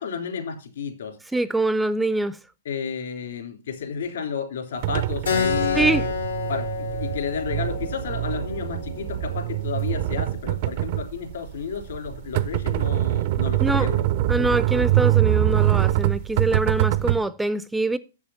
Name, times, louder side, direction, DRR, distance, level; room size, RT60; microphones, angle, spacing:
voice 1, 0.0-1.2 2.6-5.9 6.5-14.0, left 6 dB, 70° left, 3.1 m, -32 dB
voice 2, 1.3-2.4 5.7-6.1 13.6-13.9 14.3-18.0, right 2 dB, 5° right, 0.4 m, -24 dB
sound 1, 4.8-17.2, right 15 dB, 50° right, 0.5 m, -24 dB
Keyboard (musical), 5.2-10.3, left 6 dB, 90° left, 2.0 m, -30 dB
7.4 x 7.2 x 5.6 m
hypercardioid pair, 115°, 0 cm